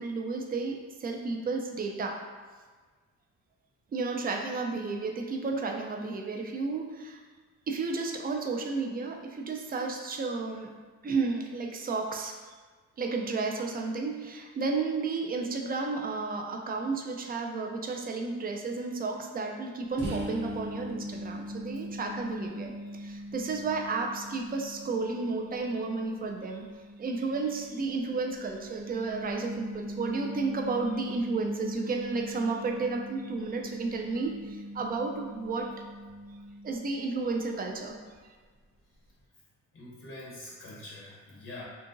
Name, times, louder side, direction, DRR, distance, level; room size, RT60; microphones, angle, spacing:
voice 1, 0.0-2.2 3.9-7.2 7.7-10.7 11.0-12.3 13.0-26.7 27.0-35.8 36.6-38.0, right 3 dB, 30° right, 3 dB, 0.4 m, -32 dB
sound 1, 20.0-37.5, equal, 75° right, 0.8 m, -41 dB
voice 2, 39.7-41.6, left 2 dB, 45° left, -5 dB, 0.7 m, -45 dB
2.8 x 2.5 x 2.5 m, 1.4 s
cardioid pair, 90°, 30 cm